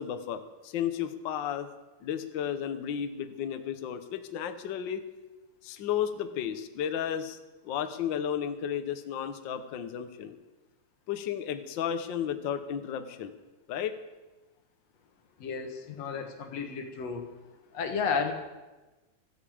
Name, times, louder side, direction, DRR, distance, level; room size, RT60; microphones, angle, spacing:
voice 1, 0.0-1.7 2.0-5.0 5.6-7.4 7.6-10.3 11.1-13.3 13.7-14.0, left 9 dB, 85° left, 9 dB, 1.0 m, -33 dB
voice 2, 15.4-17.2 17.7-18.3, left 5 dB, 60° left, 5 dB, 2.5 m, -32 dB
16.0 x 14.0 x 5.0 m, 1.1 s
omnidirectional pair, 3.4 m